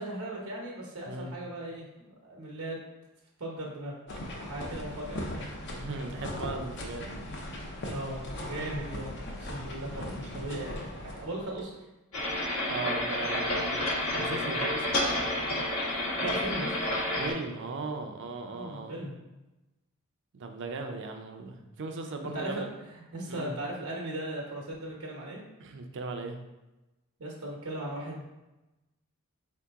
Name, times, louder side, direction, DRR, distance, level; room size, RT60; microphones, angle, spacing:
voice 1, 0.0-2.8 3.4-3.9 4.3-5.5 7.9-11.7 15.9-17.1 18.5-19.2 22.3-25.4 27.2-28.2, right 1 dB, 90° right, -2 dB, 0.9 m, -38 dB
sound 1, 4.1-11.6, left 1 dB, 55° left, 0.7 m, -39 dB
voice 2, 5.7-7.3 12.7-13.8 14.2-15.0 17.2-18.9 20.3-22.7 23.3-23.5 25.6-26.4, right 3 dB, 60° right, 4 dB, 0.5 m, -38 dB
sound 2, 12.1-17.3, left 1 dB, 70° left, 1.1 m, -30 dB
4.2 x 2.9 x 3.5 m, 1.0 s
head